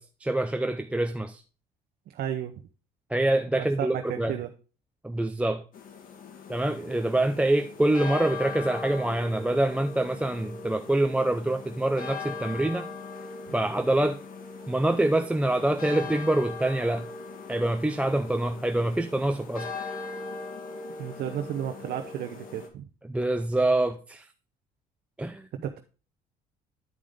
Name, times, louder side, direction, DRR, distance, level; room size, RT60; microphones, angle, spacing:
voice 1, 0.0-1.4 3.1-4.4 5.0-5.6 6.5-12.9 13.5-14.2 14.7-17.1 17.5-19.7 23.0-24.3 25.2-25.5, right 1 dB, 5° right, 0.5 m, -25 dB
voice 2, 2.1-2.5 3.5-4.5 21.0-22.9 25.6-25.8, right 10 dB, 65° right, 0.8 m, -33 dB
sound 1, 5.7-22.7, left 4 dB, 55° left, 2.0 m, -40 dB
10.5 x 5.0 x 3.7 m
cardioid pair, 110°, 17 cm